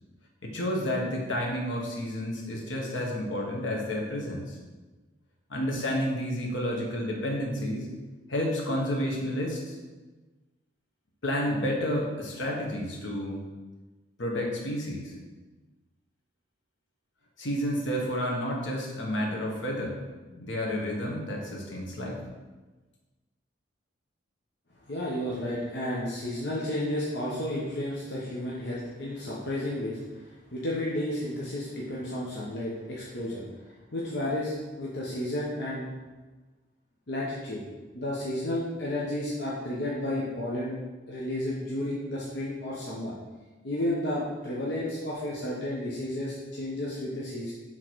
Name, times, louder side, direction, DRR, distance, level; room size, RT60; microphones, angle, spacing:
voice 1, 0.4-4.6 5.5-7.9 8.3-9.8 11.2-13.4 14.2-15.1 17.4-20.0 20.3-22.2, equal, 85° left, -1 dB, 1.3 m, -30 dB
voice 2, 24.9-33.4 33.9-35.9 37.1-37.6 37.9-40.8 41.1-43.1 43.6-47.5, left 1 dB, 65° left, -6 dB, 0.9 m, -32 dB
6.0 x 3.8 x 4.6 m, 1.2 s
head